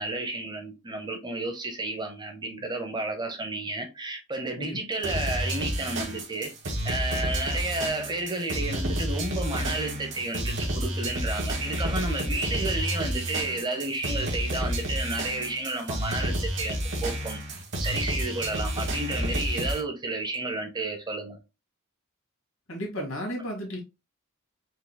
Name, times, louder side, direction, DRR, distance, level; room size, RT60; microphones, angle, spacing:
voice 1, 0.0-6.5 6.8-17.4 17.8-21.4, right 2 dB, 20° right, 0.8 m, -31 dB
sound 1, 5.0-19.8, right 1 dB, 55° right, 1.4 m, -30 dB
voice 2, 22.7-23.8, equal, 65° left, 1.9 m, -33 dB
4.7 x 3.9 x 2.2 m
head